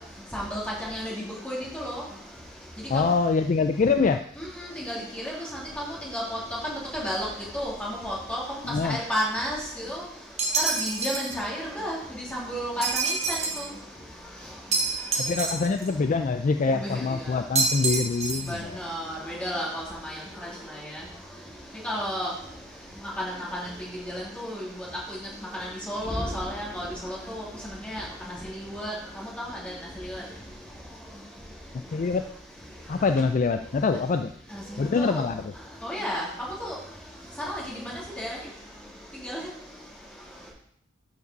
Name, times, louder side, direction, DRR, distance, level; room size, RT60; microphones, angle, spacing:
voice 1, 0.9-2.0 4.8-5.3 5.8-5.9 6.1-6.4 6.7-7.2 7.5-8.4 8.8-10.0 10.7-12.0 12.3-13.6 16.7-17.0 18.5-20.2 21.8-22.3 23.2-23.4 24.1-24.7 25.5-27.4 27.8-28.0 28.7-28.9 29.4-29.7 30.1-30.2 34.5-35.2 35.8-36.3 36.6-36.7 37.5-37.9 38.2-38.3 39.2-39.4, equal, 5° left, -6 dB, 2.9 m, -32 dB
voice 2, 2.9-4.2 8.6-9.0 15.2-18.8 31.7-32.3 32.9-34.3 34.8-35.5, left 4 dB, 40° left, 8 dB, 0.3 m, -25 dB
sound 1, 10.4-11.4 12.8-13.7 14.7-15.9 17.6-18.6, right 3 dB, 35° right, 1.3 m, -27 dB
12.0 x 5.2 x 4.0 m, 0.67 s
head